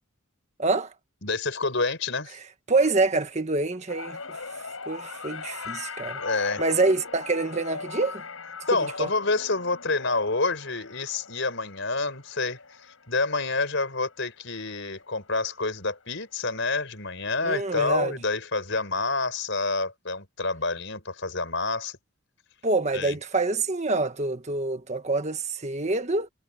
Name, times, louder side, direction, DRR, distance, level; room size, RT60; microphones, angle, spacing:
voice 1, 0.6-0.9 2.7-4.5 4.9-6.2 6.6-8.2 9.0-9.1 17.4-18.1 22.6-26.3, right 3 dB, 35° right, 1.6 m, -26 dB
voice 2, 1.2-2.4 6.2-6.6 8.7-22.0 22.9-23.2, left 3 dB, 60° left, 5.9 m, -28 dB
sound 1, 3.9-14.3 14.7-15.1 16.2-16.3, left 4 dB, 90° left, 6.8 m, -39 dB
head